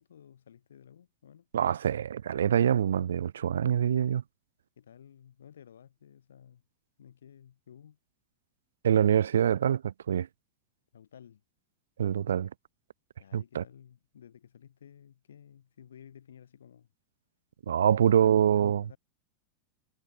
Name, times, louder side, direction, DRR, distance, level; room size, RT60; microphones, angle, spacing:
voice 1, 0.0-1.5 4.8-6.6 7.0-8.0 10.9-11.4 13.2-16.9 17.8-19.0, left 9 dB, 65° left, 4.1 m, -54 dB
voice 2, 1.5-4.2 8.8-10.3 12.0-12.5 13.3-13.6 17.7-18.8, right 9 dB, 65° right, 0.4 m, -25 dB
figure-of-eight pair, 90°, 0 cm